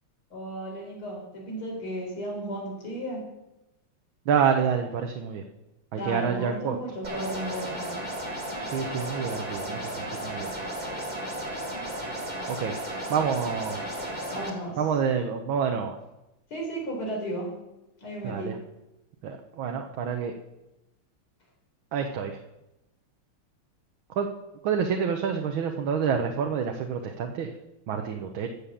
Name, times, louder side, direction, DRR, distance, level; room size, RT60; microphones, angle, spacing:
voice 1, 0.3-3.2 5.9-7.9 14.3-14.8 16.5-17.5 18.0-18.5, right 1 dB, 80° left, -1 dB, 5.0 m, -34 dB
voice 2, 4.3-5.4 5.9-6.8 8.6-10.5 12.5-12.7 13.1-14.0 14.8-16.0 18.2-18.5 19.2-20.3 21.9-22.4 24.1-24.3 24.6-27.5 27.9-28.5, right 7 dB, 70° right, 4 dB, 1.7 m, -28 dB
sound 1, 7.0-14.5, right 1 dB, 20° right, 2.5 m, -34 dB
15.0 x 7.6 x 7.1 m, 0.96 s
omnidirectional pair, 2.3 m